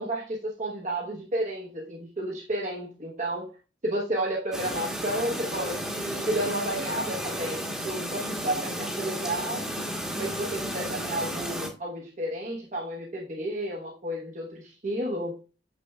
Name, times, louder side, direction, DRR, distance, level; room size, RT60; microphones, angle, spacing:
voice 1, 0.0-3.5 3.8-9.7 10.1-15.4, right 1 dB, 40° right, 1.0 m, -32 dB
Chirp tweet, 4.5-11.7, equal, 5° right, 1.1 m, -33 dB
6.7 x 6.3 x 2.3 m
head